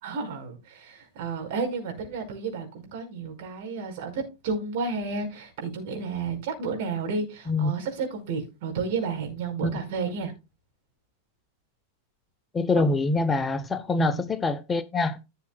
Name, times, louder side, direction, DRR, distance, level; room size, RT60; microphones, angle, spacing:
voice 1, 0.0-10.3 14.0-14.1, right 4 dB, 50° right, 5.1 m, -32 dB
voice 2, 12.5-15.2, left 3 dB, 15° left, 0.6 m, -25 dB
16.0 x 7.0 x 2.3 m
figure-of-eight pair, 90°, 0 cm